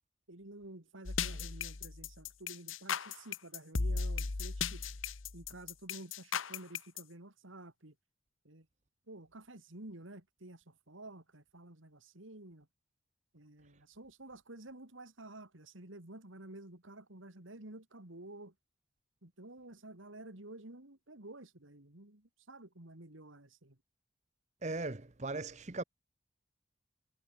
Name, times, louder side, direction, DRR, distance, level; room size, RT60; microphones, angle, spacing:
voice 1, 0.3-4.8 5.3-7.9 8.4-8.7 9.1-12.7 13.3-18.5 19.2-23.8, right 2 dB, 85° right, 3.0 m, -51 dB
sound 1, 1.1-7.0, left 5 dB, 85° left, 1.2 m, -36 dB
voice 2, 24.6-25.8, right 3 dB, 35° right, 1.0 m, -38 dB
head